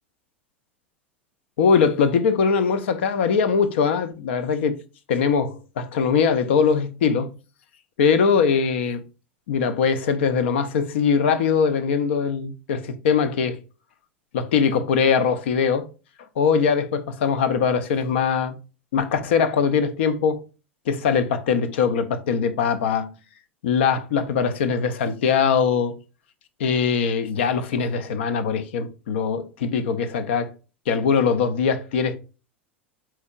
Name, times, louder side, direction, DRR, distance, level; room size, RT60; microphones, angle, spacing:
voice 1, 1.6-4.7 5.1-7.3 8.0-9.0 9.5-13.6 14.3-15.9 16.4-18.6 18.9-20.4 20.9-23.1 23.6-26.0 26.6-30.5 30.9-32.2, left 6 dB, 65° left, 0.5 m, -21 dB
4.5 x 4.3 x 2.3 m
figure-of-eight pair, 85°, 7 cm